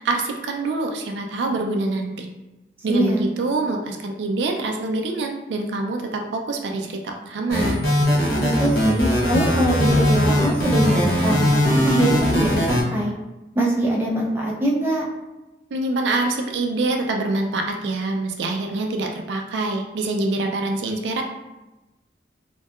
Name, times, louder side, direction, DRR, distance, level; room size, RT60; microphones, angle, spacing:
voice 1, 0.0-2.3 2.8-7.8 15.7-21.2, right 2 dB, 90° right, 3 dB, 0.3 m, -25 dB
voice 2, 2.9-3.2 8.4-13.1 13.6-15.0, right 1 dB, 15° right, -4 dB, 0.4 m, -23 dB
sound 1, 7.5-12.8, left 1 dB, 65° left, 0.7 m, -19 dB
2.7 x 2.2 x 2.3 m, 1.0 s
head